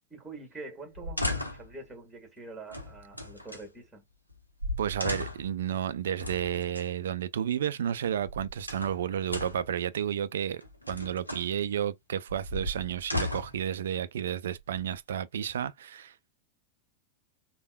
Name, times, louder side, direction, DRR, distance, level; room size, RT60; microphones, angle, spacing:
voice 1, 0.1-4.0, right 3 dB, 10° right, 1.5 m, -45 dB
sound 1, 0.9-1.7 2.7-3.6 4.3-4.4 4.6-5.6 6.2-6.9 8.0-9.0 9.3-9.7 10.6-11.5 12.3-13.6 14.5-15.2, left 1 dB, 85° left, 0.7 m, -36 dB
voice 2, 4.8-10.6 10.9-16.3, right 9 dB, 65° right, 0.3 m, -32 dB
3.4 x 2.1 x 2.5 m
figure-of-eight pair, 90°, 0 cm